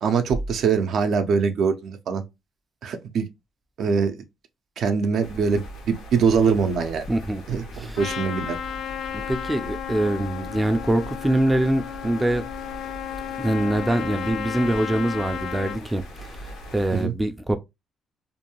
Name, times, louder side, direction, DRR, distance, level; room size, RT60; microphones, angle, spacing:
voice 1, 0.0-2.2 2.8-3.3 3.8-4.2 4.8-7.1 7.5-7.6 8.0-8.6 16.9-17.1, right 6 dB, 70° right, 0.5 m, -23 dB
sound 1, 5.2-17.0, equal, 85° left, 0.8 m, -40 dB
voice 2, 7.1-8.0 9.1-12.5 13.4-17.6, right 1 dB, 15° right, 0.3 m, -24 dB
Trumpet, 8.0-15.8, left 9 dB, 65° left, 0.4 m, -33 dB
2.6 x 2.2 x 2.9 m
cardioid pair, 90°, 0 cm